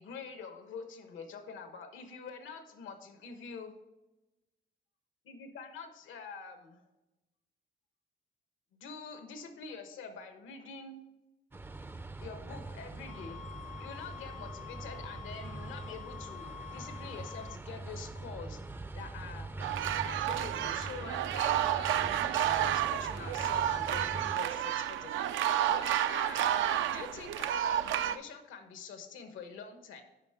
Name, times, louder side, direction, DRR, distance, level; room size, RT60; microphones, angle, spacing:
voice 1, 0.0-3.7 5.2-6.8 8.7-11.0 12.2-13.4 13.8-18.6 18.9-19.5 20.0-25.4 25.7-30.0, left 5 dB, 80° left, 7 dB, 1.2 m, -46 dB
sound 1, 11.5-24.4, right 3 dB, 10° right, 0.4 m, -43 dB
sound 2, 13.1-17.6, left 12 dB, 40° left, 0.6 m, -48 dB
sound 3, 19.6-28.2, right 11 dB, 75° right, 0.5 m, -31 dB
9.1 x 5.7 x 3.6 m, 1.0 s
cardioid pair, 90°, 20 cm